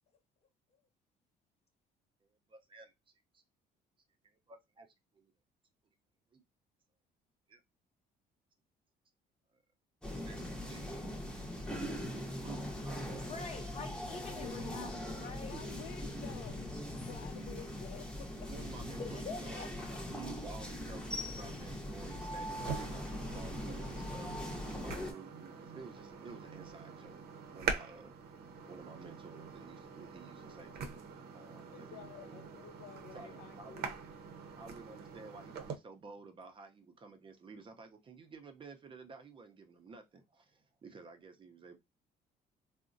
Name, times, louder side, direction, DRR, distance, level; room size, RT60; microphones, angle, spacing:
voice 1, 2.2-2.9 3.3-3.4 4.2-4.9 5.1-5.3 6.3-6.4 7.5-7.6 10.2-11.5 12.2-13.1 15.5-15.6 18.5-19.7 20.1-27.2 27.5-28.1 28.6-31.1 31.3-32.4 33.1-33.9 34.6-41.8, right 4 dB, 30° right, 0.5 m, -52 dB
sound 1, 10.0-25.1, left 1 dB, 5° left, 0.7 m, -41 dB
voice 2, 13.2-15.5 17.6-17.7 19.0-19.7, left 4 dB, 40° left, 0.8 m, -45 dB
voice 3, 14.4-15.0 15.4-16.6 17.1-18.1 31.7-34.0, left 9 dB, 75° left, 0.6 m, -51 dB
sound 2, 22.5-35.8, right 5 dB, 70° right, 0.6 m, -44 dB
3.6 x 2.1 x 2.5 m
cardioid pair, 110°, 17 cm